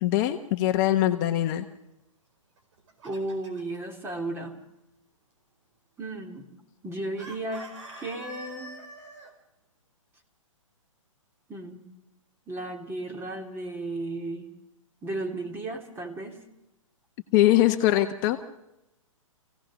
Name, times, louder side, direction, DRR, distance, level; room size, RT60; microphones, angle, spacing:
voice 1, 0.0-1.7 17.3-18.4, left 14 dB, 35° left, 6 dB, 1.1 m, -22 dB
Chicken rooster, 2.6-3.8 7.2-9.3, right 1 dB, 60° right, 4.5 m, -44 dB
voice 2, 3.0-4.5 6.0-6.5 6.8-7.7 7.9-8.8 11.5-11.8 12.5-14.5 15.0-16.4, right 2 dB, 15° right, 3 dB, 2.7 m, -34 dB
26.5 x 16.5 x 6.3 m, 0.91 s
hypercardioid pair, 130°, 17 cm